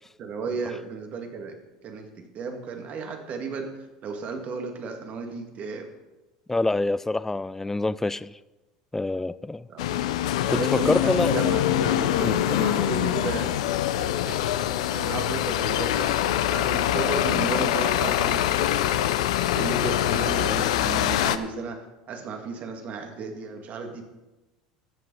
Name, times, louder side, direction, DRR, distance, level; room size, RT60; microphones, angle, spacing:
voice 1, 0.2-3.7 4.0-5.9 9.7-9.8 10.5-13.5 13.9-14.6 14.9-19.1 19.5-24.0, right 4 dB, 45° right, 5 dB, 2.0 m, -34 dB
voice 2, 6.5-8.4 8.9-9.7 10.5-11.4 12.2-12.4, left 2 dB, 10° left, 18 dB, 0.4 m, -26 dB
sound 1, 9.8-21.4, left 12 dB, 75° left, 0.6 m, -24 dB
13.0 x 7.7 x 5.5 m, 1.1 s
hypercardioid pair, 80°, 3 cm